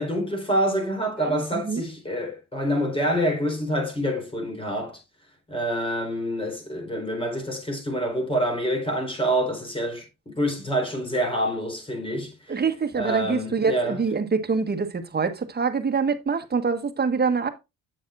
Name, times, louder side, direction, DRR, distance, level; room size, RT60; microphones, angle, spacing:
voice 1, 0.0-5.0 5.5-12.6 12.9-14.0, equal, 20° left, 4.1 m, -27 dB
voice 2, 1.2-1.8 12.5-17.5, right 5 dB, 35° right, 1.4 m, -25 dB
8.8 x 7.1 x 2.5 m
cardioid pair, 90°, 30 cm